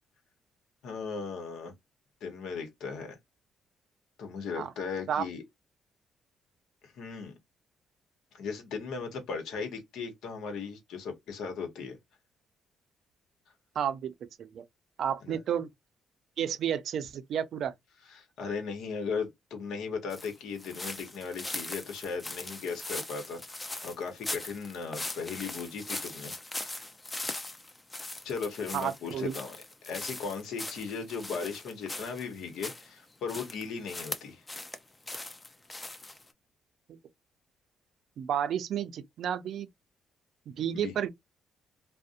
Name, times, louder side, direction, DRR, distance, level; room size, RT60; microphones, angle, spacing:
voice 1, 0.8-1.7 2.2-3.2 4.2-5.4 6.8-7.4 8.3-12.0 15.2-15.4 18.1-26.3 26.6-26.9 28.2-29.6 29.8-34.4 40.7-40.9, left 5 dB, 80° left, 0.9 m, -37 dB
voice 2, 13.8-14.1 14.4-14.6 15.0-15.7 16.4-17.7 28.7-29.3 38.2-39.7 40.5-41.1, right 9 dB, 70° right, 0.4 m, -31 dB
sound 1, 20.1-32.9 33.3-34.8 35.1-36.3, left 2 dB, 20° left, 0.5 m, -40 dB
2.5 x 2.0 x 2.5 m
cardioid pair, 90°, 0 cm